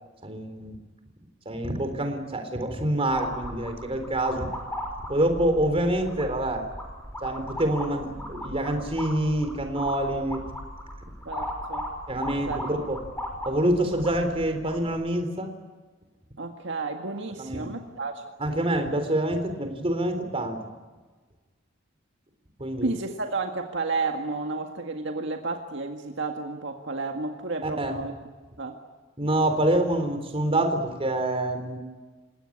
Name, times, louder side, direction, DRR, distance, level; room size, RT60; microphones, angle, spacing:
voice 1, 0.2-0.8 1.5-4.5 5.1-6.6 7.2-10.4 12.1-13.0 13.4-15.5 17.4-17.7 18.4-20.7 22.6-22.9 27.6-28.0 29.2-31.8, right 1 dB, 30° right, 7 dB, 3.7 m, -26 dB
sound 1, 3.1-14.9, left 1 dB, 10° left, 5.5 m, -37 dB
voice 2, 11.3-11.9 12.5-12.6 16.4-18.2 22.8-28.1 28.6-28.8, right 3 dB, 65° right, 4 dB, 1.8 m, -31 dB
29.0 x 17.5 x 10.0 m, 1.3 s
head